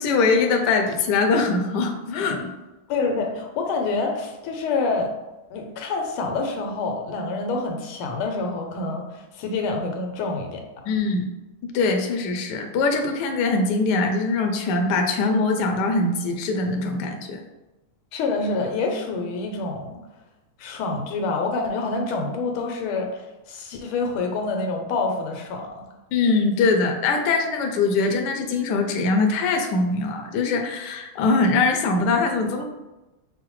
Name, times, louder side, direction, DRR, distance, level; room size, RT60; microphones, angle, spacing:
voice 1, 0.0-2.5 10.9-11.3 11.7-17.4 26.1-32.6, left 3 dB, 75° left, 3 dB, 1.0 m, -22 dB
voice 2, 2.9-5.1 5.5-10.6 18.1-20.0 20.6-23.2 23.5-25.9, left 3 dB, 90° left, 3 dB, 1.5 m, -27 dB
5.6 x 2.1 x 3.0 m, 1.0 s
omnidirectional pair, 2.3 m